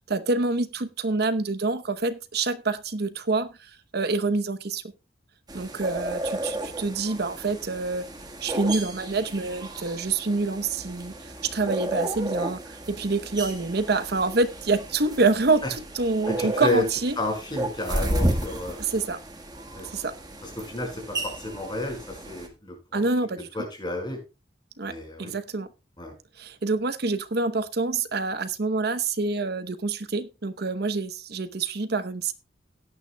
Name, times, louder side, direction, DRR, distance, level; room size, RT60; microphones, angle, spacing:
voice 1, 0.1-4.8 5.5-8.0 8.4-15.6 15.9-17.2 18.8-19.2 19.8-20.2 22.9-23.5 24.8-25.7 26.4-32.3, right 3 dB, 65° right, 11 dB, 0.9 m, -26 dB
sound 1, 5.5-22.5, right 1 dB, 25° right, 1.6 m, -33 dB
voice 2, 16.4-16.8 17.2-18.8 19.7-19.8 20.4-22.0 22.3-23.1 23.5-24.2 24.8-25.3 26.0-26.1, left 1 dB, 25° left, 2 dB, 5.2 m, -31 dB
17.0 x 9.3 x 2.3 m, 0.28 s
head